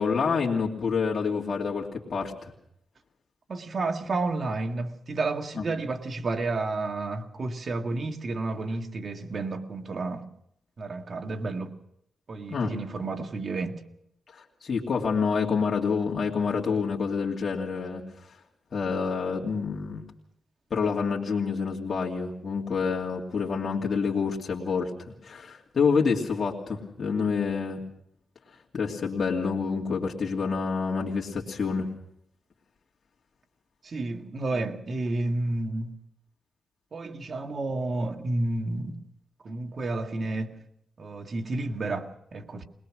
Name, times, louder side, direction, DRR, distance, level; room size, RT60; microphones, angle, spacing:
voice 1, 0.0-2.5 5.6-5.7 12.5-12.7 14.3-18.0 18.7-20.0 20.7-27.8 28.7-31.9, left 5 dB, 50° left, 2.6 m, -28 dB
voice 2, 3.5-10.2 10.8-11.7 12.3-13.8 33.8-36.0 36.9-39.0 39.4-40.6 41.0-42.6, right 2 dB, 50° right, 1.9 m, -31 dB
21.5 x 20.5 x 6.3 m
cardioid pair, 70°, 0 cm